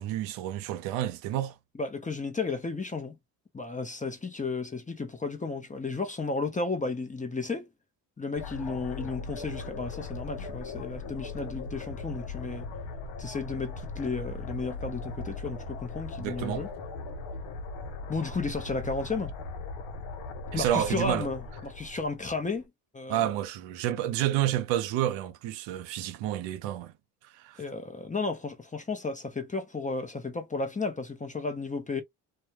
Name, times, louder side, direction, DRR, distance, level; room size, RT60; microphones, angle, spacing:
voice 1, 0.0-1.6 16.2-16.7 20.5-21.3 23.1-26.9 27.2-27.6, right 12 dB, 85° right, 0.6 m, -30 dB
voice 2, 1.8-3.1 3.5-7.7 8.2-12.7 13.2-16.7 18.1-19.3 20.5-22.6 22.9-23.3 27.6-32.0, left 3 dB, 20° left, 0.7 m, -33 dB
sound 1, 8.4-22.6, left 3 dB, 80° left, 0.7 m, -39 dB
2.2 x 2.1 x 2.9 m
supercardioid pair, 65°, 43 cm